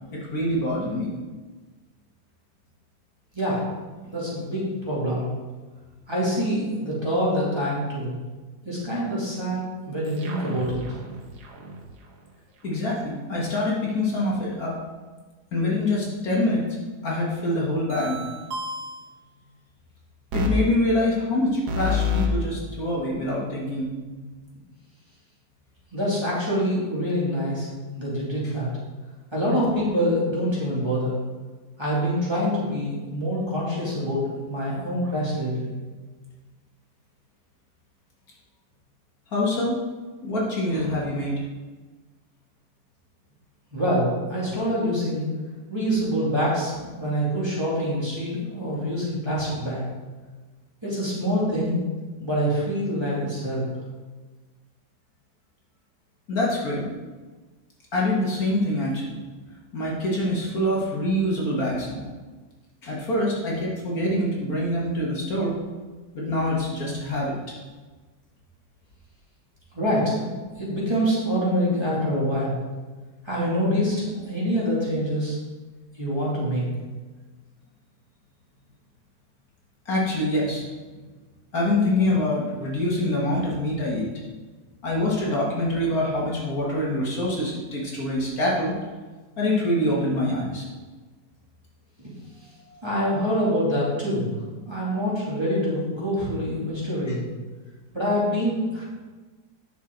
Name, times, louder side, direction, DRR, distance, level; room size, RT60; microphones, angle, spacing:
voice 1, 0.1-1.1 12.6-14.7 15.5-16.7 17.0-18.2 20.3-24.2 39.3-39.8 40.2-41.4 56.3-56.9 57.9-59.2 59.7-62.1 62.8-65.6 66.1-67.5 79.9-80.7 81.5-84.1 84.8-88.7 89.4-90.7 92.7-92.8, left 1 dB, 60° left, -4 dB, 2.1 m, -25 dB
voice 2, 4.1-5.3 6.1-8.2 8.6-10.8 25.9-27.7 27.9-28.7 29.3-31.2 31.8-35.7 43.7-45.3 45.7-49.8 50.8-51.8 52.2-53.6 69.7-70.3 70.6-72.6 73.2-75.4 75.9-76.7 92.8-94.3 94.7-97.3 97.9-98.8, equal, 15° right, -8 dB, 2.6 m, -25 dB
sound 1, 10.0-11.8 17.9-19.1 20.3-20.5 21.7-22.3, left 4 dB, 75° right, 1.6 m, -29 dB
10.0 x 6.1 x 3.9 m, 1.3 s
omnidirectional pair, 1.8 m